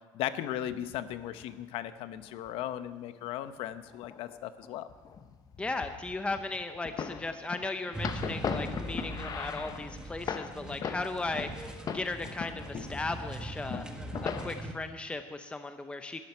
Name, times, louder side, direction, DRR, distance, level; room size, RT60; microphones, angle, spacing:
voice 1, 0.1-4.9, left 12 dB, 70° left, 12 dB, 0.8 m, -37 dB
sound 1, 0.7-1.5 2.3-2.7 3.6-4.4 4.6-11.6 11.9-13.1 13.4-14.5, left 6 dB, 40° left, 1.0 m, -39 dB
voice 2, 5.6-13.9 14.2-16.2, left 3 dB, 10° left, 8 dB, 0.7 m, -36 dB
sound 2, 7.9-14.7, right 1 dB, 10° right, 1.5 m, -41 dB
12.5 x 7.6 x 9.3 m, 1.3 s
cardioid pair, 115°, 10 cm